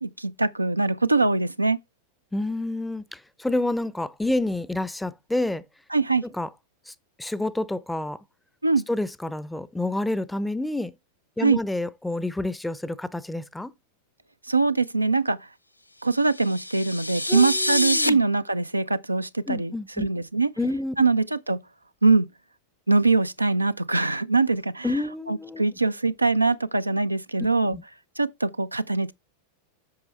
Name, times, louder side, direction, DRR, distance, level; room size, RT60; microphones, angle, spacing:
voice 1, 0.0-1.8 5.9-6.2 8.6-8.8 11.4-11.6 14.5-15.4 16.0-20.5 21.0-21.6 22.0-22.3 22.9-25.0 25.3-27.8 28.2-29.1, right 3 dB, 85° right, 0.5 m, -23 dB
voice 2, 2.3-5.6 6.4-6.5 6.9-7.0 7.2-8.2 8.9-10.9 11.4-13.7 17.3-18.2 19.5-20.1 20.6-21.0 24.8-25.6 27.7-27.8, left 2 dB, 5° left, 0.6 m, -28 dB
sound 1, 16.2-18.1, left 1 dB, 85° left, 0.4 m, -27 dB
8.6 x 6.0 x 3.2 m
figure-of-eight pair, 90°, 0 cm